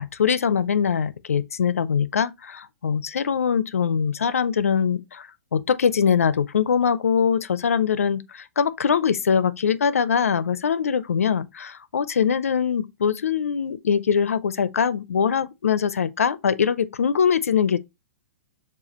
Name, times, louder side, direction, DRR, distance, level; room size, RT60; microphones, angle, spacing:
voice 1, 0.0-17.8, left 7 dB, 90° left, 0.5 m, -22 dB
7.0 x 2.4 x 2.9 m
hypercardioid pair, 130°, 7 cm